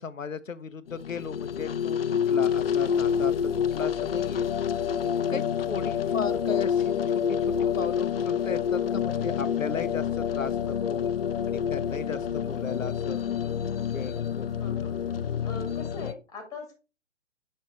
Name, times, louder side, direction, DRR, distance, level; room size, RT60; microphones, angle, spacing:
voice 1, 0.0-4.5 5.3-11.1 11.5-13.2 13.9-14.5, left 5 dB, 90° left, 0.6 m, -36 dB
sound 1, 0.9-16.1, left 8 dB, 50° left, 0.5 m, -28 dB
voice 2, 5.3-5.7 14.6-15.0 15.4-16.7, left 3 dB, 10° left, 1.8 m, -41 dB
6.7 x 5.3 x 3.2 m
figure-of-eight pair, 125°, 38 cm